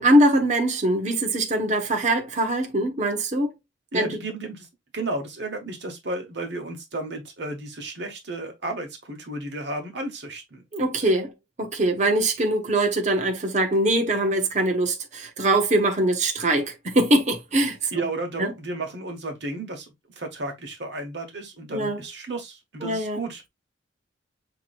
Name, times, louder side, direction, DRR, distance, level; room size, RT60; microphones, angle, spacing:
voice 1, 0.0-3.5 3.9-4.1 10.7-11.3 11.6-18.0 18.4-18.5 21.7-22.0 22.8-23.2, right 1 dB, 40° right, 0.9 m, -22 dB
voice 2, 3.9-4.7 4.9-10.6 17.9-19.9 20.2-23.4, right 2 dB, 60° right, 1.3 m, -33 dB
5.8 x 3.0 x 2.5 m
head